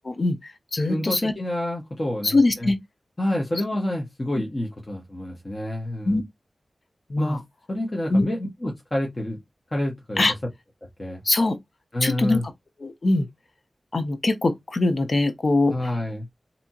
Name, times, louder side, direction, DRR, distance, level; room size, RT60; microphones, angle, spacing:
voice 1, 0.1-1.3 2.2-2.8 6.0-6.2 7.1-7.4 8.1-8.2 10.2-10.3 11.2-11.6 12.0-12.5 12.8-13.3 13.9-16.0, left 2 dB, 55° left, 0.7 m, -22 dB
voice 2, 0.9-2.7 3.2-6.2 7.2-7.4 7.7-9.4 9.7-10.3 11.0-11.2 11.9-12.4 15.7-16.3, left 1 dB, 35° left, 1.1 m, -28 dB
3.3 x 2.8 x 2.8 m
wide cardioid pair, 70°, 0 cm